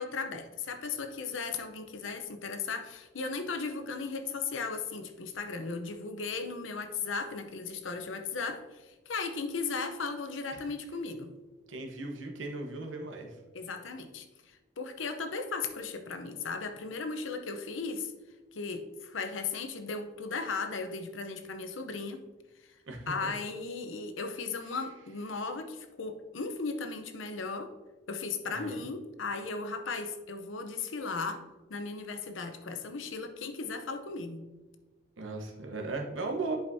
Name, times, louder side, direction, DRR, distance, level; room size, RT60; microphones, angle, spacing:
voice 1, 0.0-11.3 13.5-14.3 14.8-18.1 18.5-22.2 23.1-27.7 28.1-31.4 31.7-34.4, left 4 dB, 85° left, 7 dB, 0.8 m, -36 dB
voice 2, 11.7-13.3 22.9-23.3 28.5-28.8 35.2-36.6, right 3 dB, 85° right, 3 dB, 1.1 m, -37 dB
10.5 x 5.1 x 2.7 m, 1.2 s
head